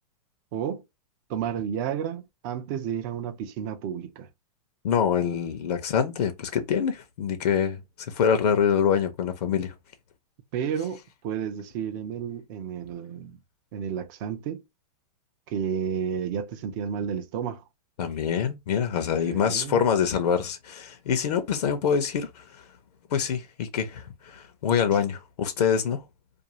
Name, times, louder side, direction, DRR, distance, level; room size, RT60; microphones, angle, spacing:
voice 1, 0.5-0.8 1.3-4.3 10.5-13.4 13.7-14.6 15.5-17.6 19.2-19.8, right 8 dB, 30° right, 0.4 m, -31 dB
voice 2, 4.8-9.7 18.0-22.7 23.1-26.0, left 7 dB, 80° left, 0.7 m, -25 dB
2.5 x 2.4 x 2.9 m
supercardioid pair, 160°, 20 cm